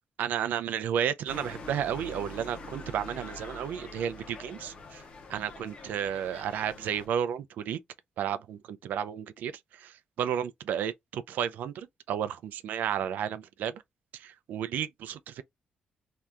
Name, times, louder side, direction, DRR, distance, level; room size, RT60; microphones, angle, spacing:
voice 1, 0.2-5.0 5.3-7.8 8.2-9.5 9.8-13.8 14.1-15.4, right 9 dB, 90° right, 0.4 m, -32 dB
sound 1, 1.3-7.1, left 2 dB, 40° left, 0.6 m, -45 dB
2.7 x 2.3 x 3.3 m
wide cardioid pair, 160°, 3 cm